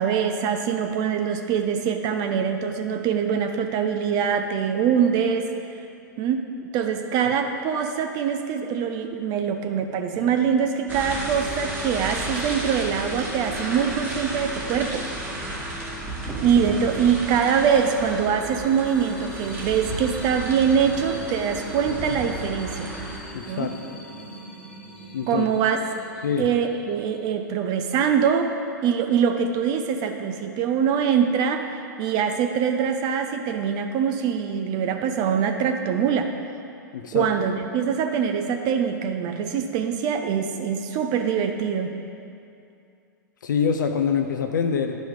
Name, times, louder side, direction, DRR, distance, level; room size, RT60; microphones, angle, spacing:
voice 1, 0.0-5.5 6.2-6.4 6.7-15.0 16.4-22.9 23.5-23.7 25.3-25.8 26.4-28.5 28.8-31.7 32.0-36.3 37.1-41.9, right 7 dB, 40° right, 6 dB, 0.6 m, -23 dB
sound 1, 10.1-27.4, left 1 dB, 5° left, 0.8 m, -46 dB
sound 2, 10.9-23.2, right 1 dB, 20° right, 1.6 m, -33 dB
sound 3, 17.8-27.1, right 2 dB, 85° right, 0.8 m, -45 dB
voice 2, 23.3-23.7 25.1-25.4 26.2-26.5 36.9-37.3 43.4-45.0, left 6 dB, 75° left, 4 dB, 0.6 m, -25 dB
10.0 x 5.3 x 4.8 m, 2.5 s
hypercardioid pair, 110°, 11 cm